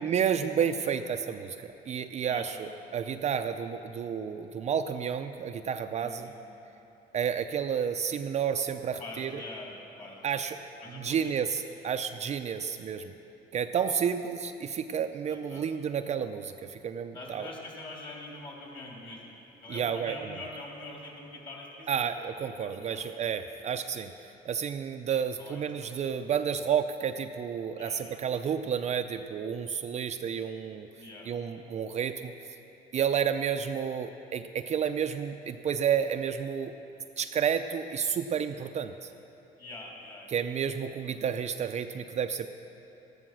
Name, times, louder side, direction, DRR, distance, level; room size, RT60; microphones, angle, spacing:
voice 1, 0.0-6.3 7.1-9.3 10.2-10.6 10.9-13.1 13.5-17.5 19.7-20.1 21.9-24.1 24.5-30.9 31.3-32.3 32.9-36.7 37.2-39.1 40.3-42.5, right 7 dB, 40° right, 8 dB, 0.5 m, -31 dB
voice 2, 2.3-2.6 6.0-6.4 9.0-11.3 12.5-12.7 15.3-15.6 17.1-22.1 22.5-23.1 25.4-26.0 27.8-28.0 31.0-31.3 39.6-40.5 41.0-41.1, left 2 dB, 30° left, -3 dB, 3.4 m, -45 dB
13.5 x 11.5 x 6.2 m, 3.0 s
cardioid pair, 110°, 17 cm